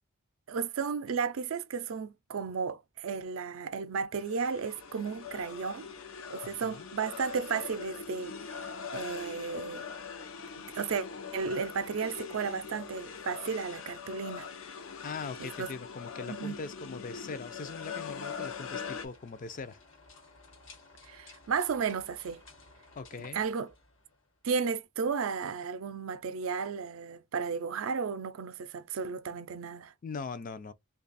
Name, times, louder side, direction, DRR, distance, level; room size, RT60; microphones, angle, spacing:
voice 1, 0.5-5.9 6.3-9.9 10.7-11.1 11.3-14.5 15.4-15.7 16.3-16.6 21.0-22.4 23.2-23.7 24.4-29.9, right 5 dB, 85° right, 0.5 m, -34 dB
sound 1, 4.2-19.1, left 6 dB, 80° left, 0.6 m, -42 dB
voice 2, 6.4-6.9 15.0-19.8 23.0-23.4 30.0-30.7, left 4 dB, 40° left, 0.4 m, -41 dB
sound 2, 18.3-24.5, left 3 dB, 65° left, 1.2 m, -56 dB
3.2 x 2.3 x 3.9 m
head